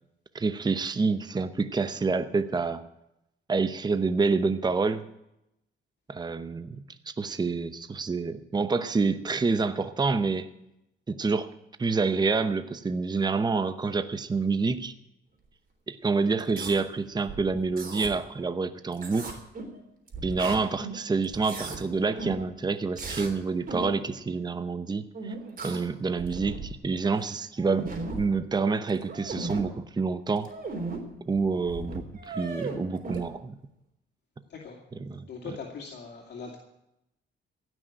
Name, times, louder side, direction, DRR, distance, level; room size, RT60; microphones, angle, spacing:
voice 1, 0.3-2.8 3.5-5.1 6.1-10.5 11.1-11.5 11.8-14.9 15.9-19.4 20.2-25.3 25.6-30.5 31.3-33.6 35.0-35.3, right 4 dB, 20° right, 11 dB, 0.8 m, -28 dB
sound 1, 16.4-16.8 17.3-18.1 18.9-19.8 20.1-21.0 21.2-21.8 22.2-22.5 23.0-23.3 23.7-24.0 25.1-25.9 26.2-26.8 27.2-27.3 27.5-28.3 28.9-29.6 30.4-31.0 31.4-31.5 31.6-33.2, right 3 dB, 45° right, 3.5 m, -36 dB
voice 2, 35.3-36.6, left 5 dB, 60° left, -2 dB, 2.6 m, -40 dB
16.0 x 6.3 x 8.9 m, 0.84 s
cardioid pair, 90°, 20 cm